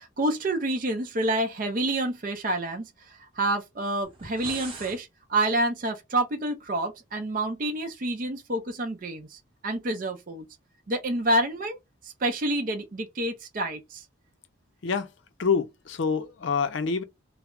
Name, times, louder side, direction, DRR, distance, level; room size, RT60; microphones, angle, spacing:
voice 1, 0.0-10.5 10.9-11.8 12.0-14.0, right 1 dB, 45° right, 0.5 m, -28 dB
sound 1, 4.0-5.0, right 3 dB, 25° right, 0.8 m, -41 dB
voice 2, 15.4-17.0, left 5 dB, 70° left, 0.5 m, -26 dB
2.2 x 2.0 x 3.6 m
head